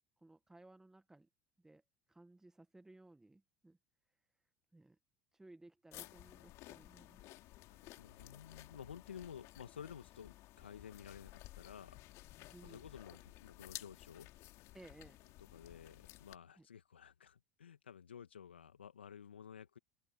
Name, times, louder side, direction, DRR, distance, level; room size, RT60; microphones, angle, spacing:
voice 1, 0.2-1.3 1.6-1.8 2.1-3.8 4.7-5.0 5.3-7.3 12.5-12.8 14.7-15.2 16.6-16.7, right 2 dB, 10° right, 1.6 m, -60 dB
sound 1, 5.9-16.4, left 18 dB, 55° left, 3.4 m, -55 dB
voice 2, 7.7-12.0 12.6-14.3 15.4-19.8, left 8 dB, 85° left, 2.4 m, -53 dB
open air
hypercardioid pair, 70°, 6 cm